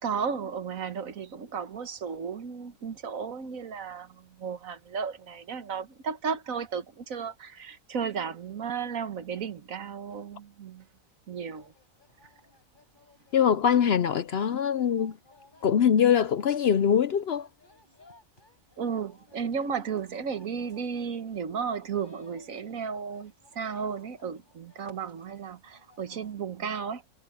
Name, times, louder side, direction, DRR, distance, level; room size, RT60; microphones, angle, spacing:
voice 1, 0.0-10.8 11.3-11.7 18.8-27.0, right 6 dB, 70° right, 1.6 m, -34 dB
sound 1, 11.5-26.4, left 3 dB, 35° left, 6.1 m, -60 dB
voice 2, 13.3-15.2 15.6-17.5, left 8 dB, 60° left, 0.7 m, -23 dB
omnidirectional pair, 1.5 m